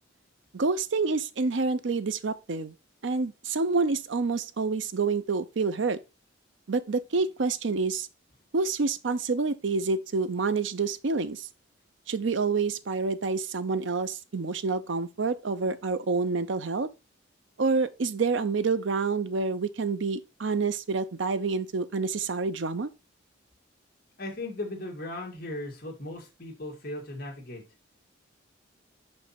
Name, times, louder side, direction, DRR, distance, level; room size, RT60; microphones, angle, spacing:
voice 1, 0.5-2.7 3.0-6.0 6.7-8.1 8.5-11.5 12.1-16.9 17.6-22.9, right 4 dB, 70° right, 0.6 m, -28 dB
voice 2, 24.2-27.6, left 2 dB, 50° left, 2.1 m, -37 dB
5.4 x 5.3 x 4.2 m
head